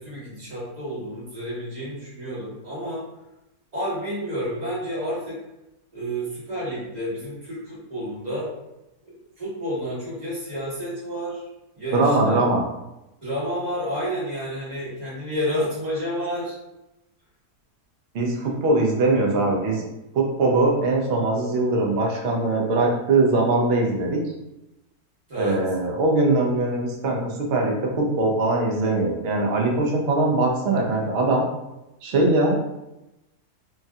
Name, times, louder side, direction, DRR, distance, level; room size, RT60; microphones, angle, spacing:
voice 1, 0.0-3.0 3.7-5.4 5.9-8.5 9.1-11.4 11.8-12.4 13.2-16.6 25.3-25.6, equal, 30° right, -9 dB, 1.3 m, -30 dB
voice 2, 11.9-12.6 18.1-19.8 20.1-24.2 25.3-31.4 32.0-32.8, right 2 dB, 85° right, 0 dB, 0.5 m, -21 dB
3.1 x 2.6 x 2.3 m, 0.94 s
omnidirectional pair, 1.7 m